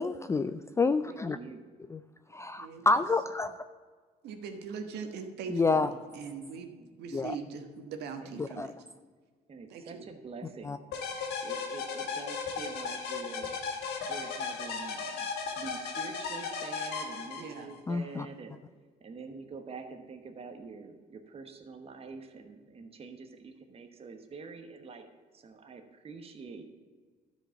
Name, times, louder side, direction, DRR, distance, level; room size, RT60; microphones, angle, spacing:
voice 1, 0.0-1.4 1.9-2.0 2.3-3.5 5.5-5.9 7.1-7.4 8.4-8.7 10.6-10.8 17.9-18.3, left 3 dB, 15° left, 10 dB, 0.4 m, -28 dB
voice 2, 1.1-1.6 6.8-6.9 8.2-8.7 9.5-10.8 11.4-15.3 15.6-18.5 19.0-25.1 25.3-26.6, right 4 dB, 35° right, 5 dB, 1.2 m, -46 dB
voice 3, 2.6-2.9 4.2-6.7 7.0-8.7 9.7-10.1 17.4-17.7, right 6 dB, 80° right, 6 dB, 1.4 m, -41 dB
sound 1, 10.9-17.8, left 5 dB, 75° left, 2.0 m, -36 dB
12.0 x 5.2 x 7.0 m, 1.5 s
cardioid pair, 110°, 17 cm